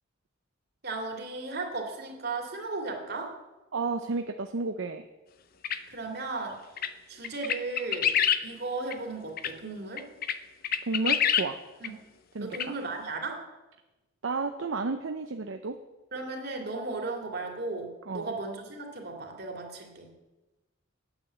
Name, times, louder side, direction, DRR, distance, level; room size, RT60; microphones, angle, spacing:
voice 1, 0.8-3.3 5.9-6.6 7.1-8.1 8.4-10.1 11.8-11.9 12.4-13.4 16.1-20.1, right 3 dB, 55° right, 1 dB, 2.5 m, -35 dB
voice 2, 3.7-5.0 10.9-11.6 12.3-12.5 14.2-15.8 18.1-18.3, right 3 dB, 70° right, 6 dB, 0.6 m, -31 dB
sound 1, 5.6-5.8 6.8-6.9 7.2-8.4 8.9-9.0 9.4-9.5 10.0-10.3 10.6-11.5 11.8-11.9 12.5-12.7, left 9 dB, 45° left, 0.6 m, -26 dB
9.5 x 8.8 x 7.8 m, 1.1 s
head